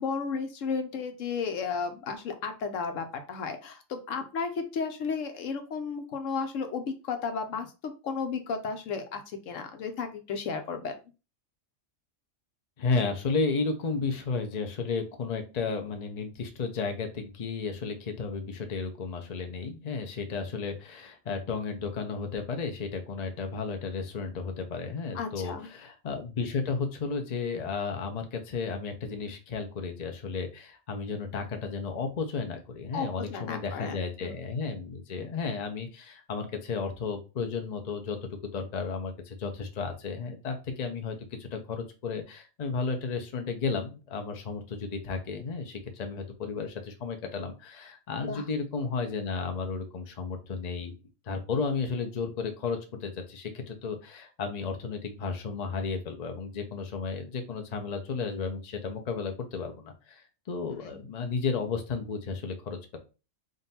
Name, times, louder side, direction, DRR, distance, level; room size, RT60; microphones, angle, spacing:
voice 1, 0.0-10.9 25.1-25.7 32.9-34.3 48.2-48.4 60.7-61.0, left 5 dB, 80° left, 6 dB, 1.1 m, -34 dB
voice 2, 12.8-51.0 51.3-63.0, left 4 dB, 40° left, 5 dB, 0.7 m, -33 dB
3.8 x 2.6 x 4.0 m, 0.30 s
omnidirectional pair, 1.3 m